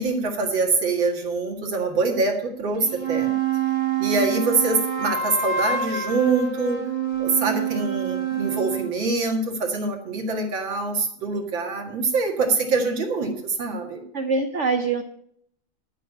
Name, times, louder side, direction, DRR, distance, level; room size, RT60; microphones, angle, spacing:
voice 1, 0.0-3.3 4.0-6.8 7.2-14.0, right 3 dB, 65° right, 2 dB, 2.7 m, -24 dB
sound 1, 2.7-8.9, right 7 dB, 25° right, 0.8 m, -26 dB
voice 2, 4.2-4.7 14.1-15.0, right 4 dB, 85° right, 7 dB, 0.6 m, -25 dB
12.0 x 5.8 x 8.3 m, 0.69 s
omnidirectional pair, 2.4 m